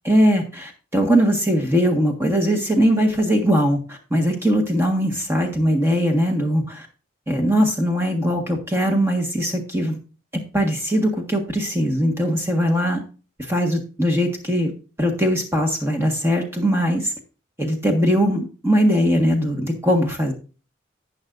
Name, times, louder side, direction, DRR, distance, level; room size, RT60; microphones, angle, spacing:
voice 1, 0.0-6.9 7.3-10.0 10.5-13.0 13.5-14.7 15.0-17.1 17.6-20.3, equal, 15° right, 3 dB, 1.5 m, -20 dB
11.5 x 8.6 x 2.6 m, 0.35 s
head